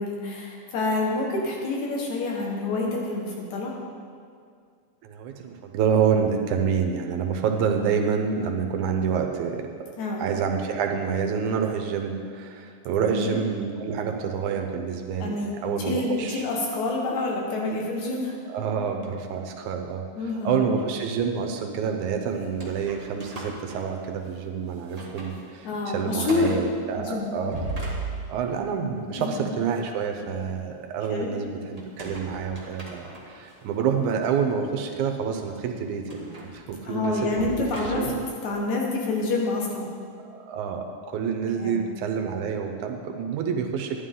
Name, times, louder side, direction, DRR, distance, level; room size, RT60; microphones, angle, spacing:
voice 1, 0.0-3.7 10.0-10.3 13.1-13.4 15.2-15.6 15.8-18.3 20.1-20.7 25.6-26.6 27.0-27.3 29.1-29.4 31.1-31.3 36.9-39.9 41.5-41.8, left 3 dB, 75° left, -2 dB, 2.9 m, -27 dB
voice 2, 5.0-9.7 10.2-16.5 18.5-20.0 20.4-27.6 28.3-38.3 40.2-44.0, right 6 dB, 85° right, 4 dB, 2.3 m, -28 dB
sound 1, 22.4-24.4 24.8-25.4 25.7-25.8 26.2-26.6 27.3-28.6 31.8-33.5 34.2-34.3 36.1-38.3, right 2 dB, 35° right, 0.6 m, -38 dB
11.5 x 10.5 x 3.8 m, 2.2 s
omnidirectional pair, 3.4 m